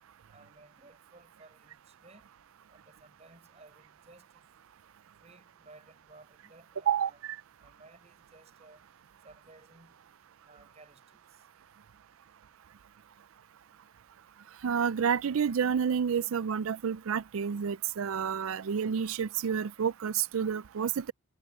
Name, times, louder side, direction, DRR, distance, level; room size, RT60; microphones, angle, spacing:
voice 1, 0.3-2.3 2.7-4.3 5.2-7.2 7.6-8.8 9.2-10.0 10.4-11.4, right 2 dB, 30° right, 7.0 m, -57 dB
voice 2, 6.9-7.4 14.6-21.1, right 7 dB, 75° right, 0.4 m, -29 dB
head